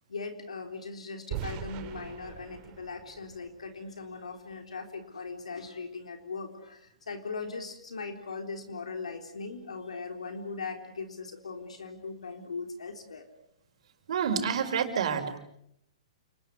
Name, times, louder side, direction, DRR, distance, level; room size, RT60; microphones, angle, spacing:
voice 1, 0.1-13.3, left 4 dB, 80° left, 5 dB, 3.8 m, -39 dB
sound 1, 1.3-4.3, right 10 dB, 35° right, 2.7 m, -41 dB
voice 2, 14.1-15.4, right 7 dB, 65° right, 5 dB, 5.3 m, -28 dB
29.0 x 20.5 x 8.1 m, 0.73 s
hypercardioid pair, 125°, 3 cm